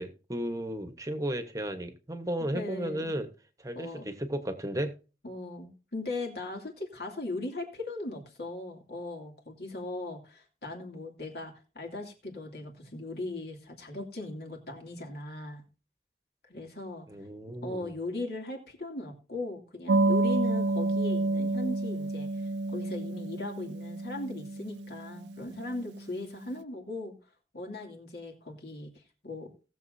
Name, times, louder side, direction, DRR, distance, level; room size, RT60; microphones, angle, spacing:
voice 1, 0.0-3.3 3.6-4.9 17.1-17.9, right 1 dB, 20° right, 8 dB, 1.2 m, -34 dB
voice 2, 2.5-3.1 3.7-4.1 5.2-15.6 16.5-17.1 17.6-22.3 22.7-27.1 27.5-28.9 29.2-29.5, left 2 dB, 60° left, 1 dB, 2.7 m, -38 dB
sound 1, 19.9-26.1, right 2 dB, 80° right, 0.4 m, -29 dB
19.0 x 7.3 x 2.7 m, 0.34 s
head